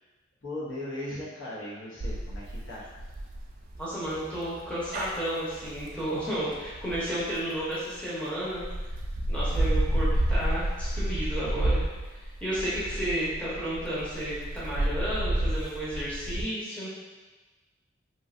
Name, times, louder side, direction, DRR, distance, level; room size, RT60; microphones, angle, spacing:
voice 1, 0.4-2.9, left 1 dB, 75° left, -6 dB, 0.8 m, -38 dB
sound 1, 2.0-8.0 8.5-16.4, right 1 dB, 45° right, 0.3 m, -30 dB
voice 2, 3.8-8.6 9.3-11.8 12.2-16.9, equal, 5° left, -9 dB, 0.7 m, -32 dB
2.9 x 2.6 x 2.5 m, 1.3 s
head